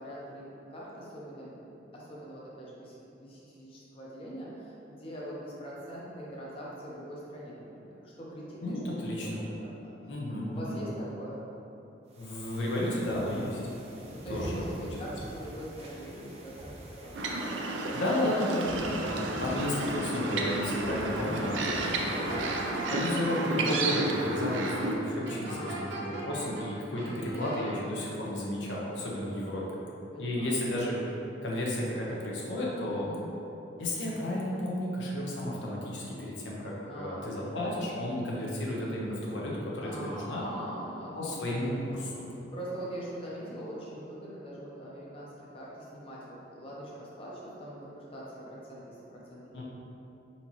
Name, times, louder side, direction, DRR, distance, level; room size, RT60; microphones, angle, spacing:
voice 1, 0.0-9.7 10.5-11.4 14.1-17.7 21.3-21.9 25.4-26.3 27.0-27.4 30.1-30.6 32.9-33.3 36.9-37.6 39.8-41.6 42.5-49.6, equal, 30° left, -6 dB, 0.7 m, -43 dB
voice 2, 8.6-9.4 10.1-10.8 12.2-13.6 14.3-14.6 14.9-15.0 17.9-21.8 22.1-22.4 22.9-29.7 30.2-31.0 31.4-33.1 33.8-40.4 41.1-42.2 49.5-49.6, left 1 dB, 80° left, -4 dB, 0.8 m, -32 dB
sound 1, 12.1-22.8, right 1 dB, 35° right, 0.5 m, -46 dB
sound 2, 17.1-24.9, right 2 dB, 85° right, 0.5 m, -32 dB
sound 3, 21.8-23.2 25.2-26.7 26.9-27.7, right 2 dB, 60° right, 1.0 m, -40 dB
4.2 x 4.1 x 3.0 m, 2.9 s
head